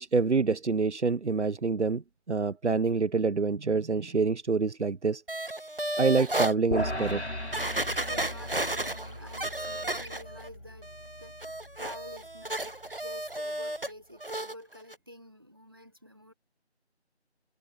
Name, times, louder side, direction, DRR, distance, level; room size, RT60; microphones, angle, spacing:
voice 1, 0.0-2.0 2.3-5.2 6.0-7.2, right 4 dB, 80° right, 0.8 m, -26 dB
sound 1, 5.3-6.5 7.1-7.2 7.5-10.5 10.8-13.9 14.2-14.5 14.9-15.0, right 1 dB, 55° right, 1.0 m, -33 dB
sound 2, 6.7-13.1, left 1 dB, 75° left, 6.0 m, -38 dB
voice 2, 7.8-16.3, left 1 dB, 20° right, 4.0 m, -49 dB
figure-of-eight pair, 180°, 34 cm